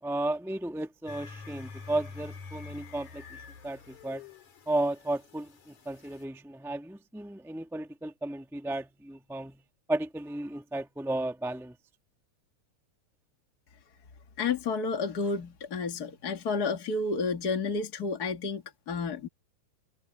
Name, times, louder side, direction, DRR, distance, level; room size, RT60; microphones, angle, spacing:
voice 1, 0.0-4.3 4.6-9.6 9.9-11.8, right 1 dB, ahead, 1.1 m, -34 dB
sound 1, 1.1-6.2, left 5 dB, 90° left, 4.9 m, -47 dB
voice 2, 14.4-19.3, left 4 dB, 40° left, 1.8 m, -31 dB
omnidirectional pair, 3.3 m